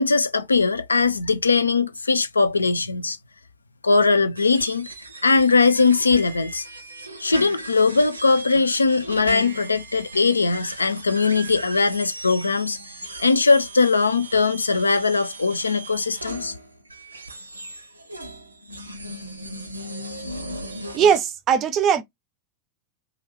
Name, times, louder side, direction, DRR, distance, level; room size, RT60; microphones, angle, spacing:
voice 1, 0.0-3.2 3.8-4.9 5.2-6.7 7.2-12.8 13.2-16.6, left 4 dB, 80° left, 0.3 m, -20 dB
sound 1, 4.4-21.2, right 1 dB, 80° right, 0.6 m, -37 dB
voice 2, 20.9-22.0, right 7 dB, 30° right, 0.5 m, -19 dB
3.0 x 2.3 x 2.9 m
figure-of-eight pair, 90°, 0 cm